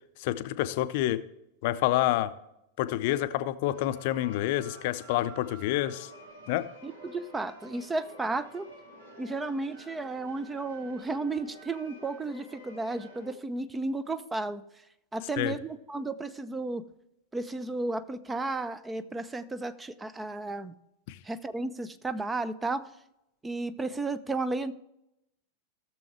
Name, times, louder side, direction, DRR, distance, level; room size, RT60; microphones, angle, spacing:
voice 1, 0.2-1.3 1.6-2.3 2.8-6.1 6.5-6.7 15.4-15.5 21.1-21.2, left 14 dB, 50° left, 13 dB, 0.5 m, -28 dB
sound 1, 3.7-13.3, right 1 dB, 70° right, 2.3 m, -50 dB
voice 2, 6.8-8.7 9.2-14.6 15.1-16.9 17.3-20.7 21.2-22.9 23.4-24.7, right 2 dB, 10° right, 13 dB, 0.6 m, -33 dB
16.5 x 7.0 x 3.2 m, 0.84 s
figure-of-eight pair, 90°, 0 cm